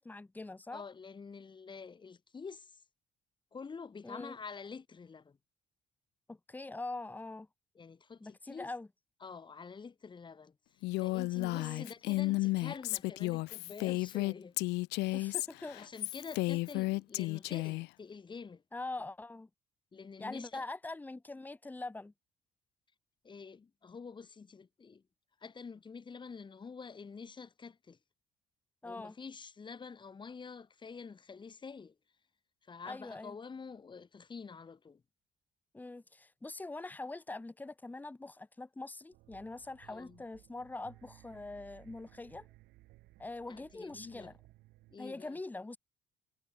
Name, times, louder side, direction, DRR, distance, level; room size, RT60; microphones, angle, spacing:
voice 1, 0.0-0.8 4.0-4.4 6.3-7.5 8.2-8.9 11.5-11.9 15.1-15.8 18.7-19.5 20.2-22.1 28.8-29.2 32.9-33.4 35.7-42.5 43.2-44.3 45.0-45.8, left 2 dB, 10° left, 0.9 m, -43 dB
voice 2, 0.7-2.8 3.5-5.4 7.7-8.7 9.2-14.6 15.1-15.2 15.7-18.6 19.9-20.6 23.2-25.0 25.4-28.0 28.8-31.9 32.7-35.0 39.9-40.2 43.5-44.3 44.9-45.4, left 5 dB, 25° left, 2.7 m, -47 dB
Female speech woman speaking, 10.8-17.9, left 21 dB, 80° left, 0.4 m, -33 dB
sound 1, 39.1-45.0, right 19 dB, 85° right, 2.4 m, -60 dB
cardioid pair, 110°, 17 cm